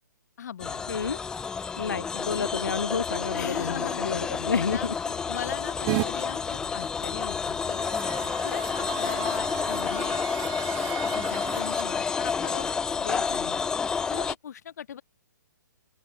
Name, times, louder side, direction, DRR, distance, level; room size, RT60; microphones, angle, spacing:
voice 1, 0.4-0.9 3.3-4.0 4.6-4.9 5.3-7.9 8.4-10.3 11.0-13.7 14.1-15.0, left 9 dB, 55° left, 0.8 m, -39 dB
sound 1, 0.6-14.3, left 5 dB, 5° left, 0.3 m, -30 dB
voice 2, 0.9-1.2 1.8-4.9, left 5 dB, 75° left, 0.5 m, -30 dB
sound 2, 2.5-7.6, left 36 dB, 25° left, 1.4 m, -47 dB
sound 3, 5.9-6.1 7.5-11.8, right 39 dB, 30° right, 0.9 m, -35 dB
open air
figure-of-eight pair, 130°, 11 cm